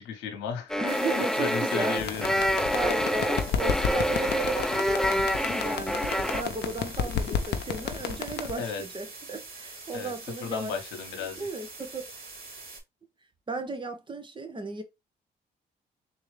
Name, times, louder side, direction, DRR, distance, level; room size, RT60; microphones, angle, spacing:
voice 1, 0.0-0.8 1.1-2.3 8.6-8.8 9.9-10.1 10.4-11.5, left 6 dB, 90° left, 1.0 m, -34 dB
sound 1, 0.7-6.4, equal, 5° left, 0.4 m, -27 dB
voice 2, 0.8-2.0 2.7-10.7 11.4-12.0 13.5-14.8, right 3 dB, 25° right, 1.2 m, -35 dB
sound 2, 0.9-12.8, right 3 dB, 55° right, 2.4 m, -44 dB
sound 3, 2.0-8.6, left 7 dB, 65° left, 0.7 m, -32 dB
3.7 x 3.0 x 3.3 m
supercardioid pair, 65°, 19 cm